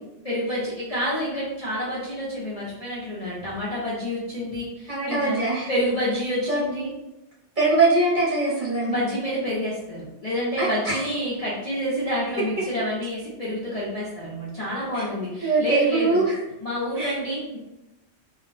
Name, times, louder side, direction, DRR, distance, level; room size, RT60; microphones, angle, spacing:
voice 1, 0.2-5.4 5.7-6.9 8.9-16.2 16.6-17.6, equal, 40° left, -8 dB, 0.6 m, -28 dB
voice 2, 4.9-5.7 6.5-6.6 7.6-9.0 10.6-11.1 14.9-15.0 15.4-16.4 17.0-17.1, right 3 dB, 45° right, -7 dB, 1.0 m, -22 dB
2.4 x 2.1 x 3.9 m, 0.96 s
omnidirectional pair, 1.2 m